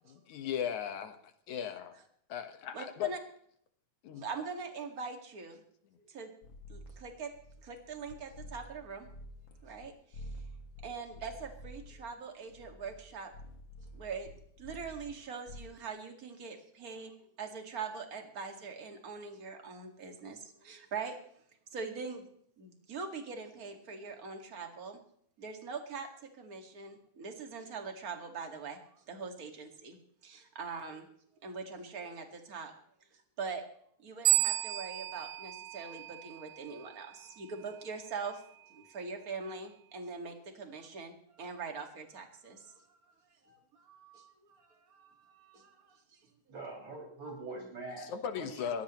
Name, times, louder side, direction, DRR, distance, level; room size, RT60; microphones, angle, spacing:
voice 1, 0.1-1.2 1.5-2.0 2.3-3.1 4.0-4.2 48.0-48.8, left 8 dB, 80° left, 8 dB, 2.8 m, -37 dB
voice 2, 2.7-3.2 4.1-5.6 6.0-6.3 6.7-7.3 7.6-9.1 9.6-10.4 10.8-13.3 13.8-14.3 14.6-21.4 21.7-22.3 22.6-25.0 25.4-30.0 30.2-31.1 31.4-32.7 33.1-33.6 34.0-43.1 43.4-46.3 47.2-47.3, right 5 dB, 30° right, 4 dB, 2.2 m, -43 dB
sound 1, 6.4-9.9 10.1-15.1 15.5-15.6, equal, 45° left, 2.3 m, -49 dB
sound 2, 34.3-36.7, right 16 dB, 90° right, 2.5 m, -32 dB
voice 3, 46.5-48.6, right 2 dB, 60° right, -2 dB, 7.3 m, -44 dB
21.0 x 16.0 x 3.1 m, 0.63 s
omnidirectional pair, 3.4 m